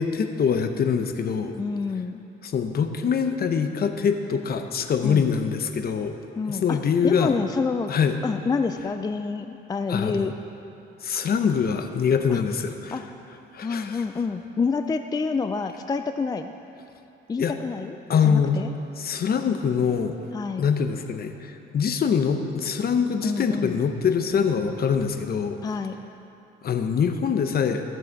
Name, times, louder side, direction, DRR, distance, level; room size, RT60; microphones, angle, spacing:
voice 1, 0.0-1.6 2.4-6.1 6.5-7.3 7.9-8.2 9.9-10.3 11.0-13.0 13.5-14.0 17.4-17.5 18.1-18.6 19.0-20.2 20.6-25.6 26.6-27.8, left 6 dB, 50° left, 7 dB, 0.8 m, -24 dB
voice 2, 1.6-2.2 5.0-5.3 6.4-7.9 8.2-10.3 12.3-12.4 12.9-13.0 13.6-16.5 17.3-18.0 18.2-18.7 20.3-20.7 23.2-23.8 25.6-26.0, left 4 dB, 20° left, 8 dB, 0.3 m, -27 dB
14.5 x 6.3 x 4.6 m, 2.8 s
cardioid pair, 90°, 20 cm